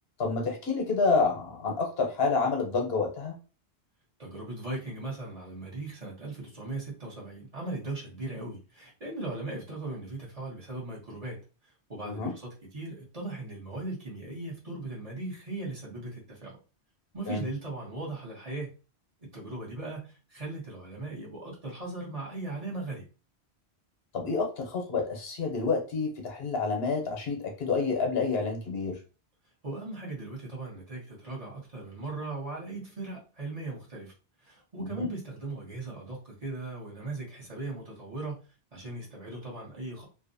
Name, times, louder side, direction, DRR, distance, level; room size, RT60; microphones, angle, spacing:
voice 1, 0.2-3.4 12.0-12.3 17.3-17.5 24.1-29.0 34.8-35.1, left 4 dB, 70° left, 0.9 m, -28 dB
voice 2, 4.2-11.4 11.9-16.6 17.1-18.7 19.3-23.1 29.6-34.1 34.4-38.4 38.7-40.1, right 2 dB, 40° right, 1.0 m, -38 dB
2.6 x 2.1 x 2.5 m
omnidirectional pair, 1.1 m